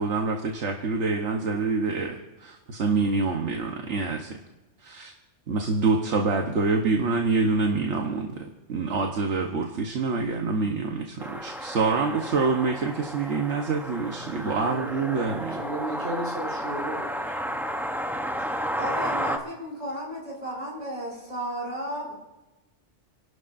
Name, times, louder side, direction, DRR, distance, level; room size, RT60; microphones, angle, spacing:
voice 1, 0.0-4.4 4.8-5.1 5.5-15.6, right 4 dB, 75° right, 2 dB, 1.4 m, -26 dB
sound 1, 11.2-19.4, equal, ahead, 0.7 m, -32 dB
voice 2, 14.3-14.9 15.5-17.6, right 1 dB, 55° right, -4 dB, 5.8 m, -35 dB
voice 3, 18.7-22.1, equal, 35° right, -5 dB, 6.5 m, -33 dB
29.5 x 12.0 x 2.6 m, 1.0 s
omnidirectional pair, 1.2 m